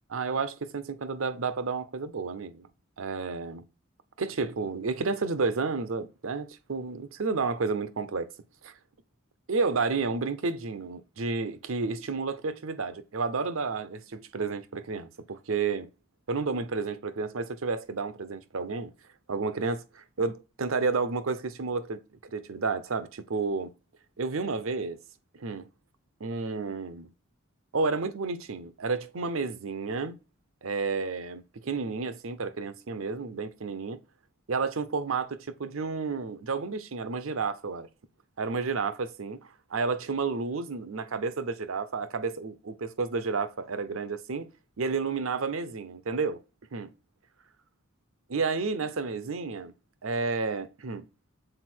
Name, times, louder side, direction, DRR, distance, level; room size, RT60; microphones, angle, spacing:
voice 1, 0.1-2.7 3.0-3.6 4.2-8.3 8.6-8.7 9.5-15.9 16.3-18.9 19.3-23.7 24.2-25.0 25.3-25.7 26.2-27.1 27.7-30.2 30.6-34.0 34.5-37.9 38.4-44.5 44.8-46.4 46.7-46.9 48.3-49.7 50.0-51.1, right 4 dB, 75° right, 0.7 m, -31 dB
6.6 x 4.2 x 4.4 m
head